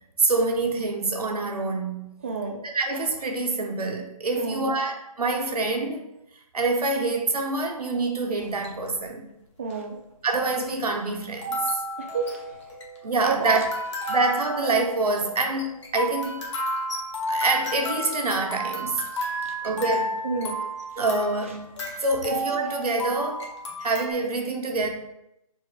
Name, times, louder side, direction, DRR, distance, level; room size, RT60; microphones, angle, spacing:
voice 1, 0.2-2.1 2.6-6.1 6.5-9.3 10.2-11.6 13.0-13.6 14.1-15.7 15.9-16.4 17.3-19.0 19.6-20.2 21.0-21.7 22.0-23.5 23.8-24.9, right 3 dB, 85° right, 0.8 m, -26 dB
voice 2, 2.2-2.6 4.4-4.7 9.6-10.0 12.0-12.4 13.2-13.5 19.4-19.5 20.2-20.6, right 4 dB, 20° right, 0.4 m, -30 dB
sound 1, 8.4-8.9 9.7-9.8 11.3-24.1, equal, 50° left, 0.9 m, -32 dB
4.5 x 2.0 x 4.6 m
hypercardioid pair, 160°, 19 cm